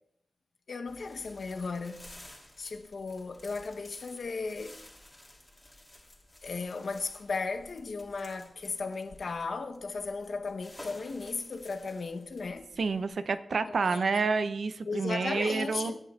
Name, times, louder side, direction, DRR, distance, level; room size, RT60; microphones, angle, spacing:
voice 1, 0.7-2.3 2.6-4.8 6.4-12.7 13.8-14.2 14.9-16.0, left 4 dB, 80° left, 0.9 m, -36 dB
sound 1, 0.9-13.2, left 1 dB, 15° left, 2.8 m, -53 dB
voice 2, 12.8-15.9, right 4 dB, 85° right, 0.6 m, -29 dB
23.5 x 11.0 x 2.4 m
wide cardioid pair, 90°, 0 cm